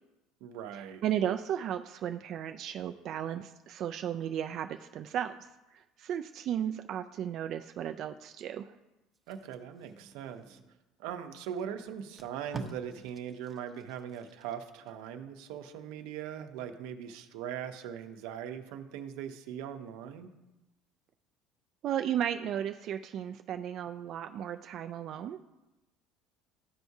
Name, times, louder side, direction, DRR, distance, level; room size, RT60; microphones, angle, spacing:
voice 1, 0.4-1.0 9.3-10.6 11.0-20.3, right 9 dB, 80° right, 7 dB, 0.7 m, -40 dB
voice 2, 1.0-5.4 5.7-8.7 21.8-25.4, right 10 dB, 50° right, 6 dB, 0.3 m, -34 dB
Packing tape duct tape, 9.1-10.8 11.5-11.6 11.9-14.9 15.3-15.6, right 3 dB, 25° right, 0.7 m, -47 dB
13.5 x 4.6 x 2.7 m, 1.0 s
cardioid pair, 130°, 0 cm